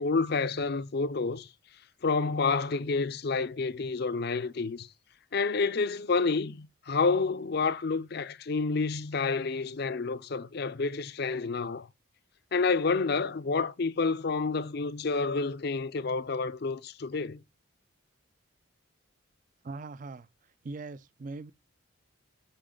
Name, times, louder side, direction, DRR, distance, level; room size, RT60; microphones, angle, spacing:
voice 1, 0.0-1.5 2.0-4.9 5.3-11.9 12.5-17.4, left 4 dB, 50° left, 0.5 m, -29 dB
voice 2, 19.6-20.3 20.6-21.5, right 3 dB, 40° right, 0.4 m, -40 dB
8.8 x 5.0 x 3.8 m
head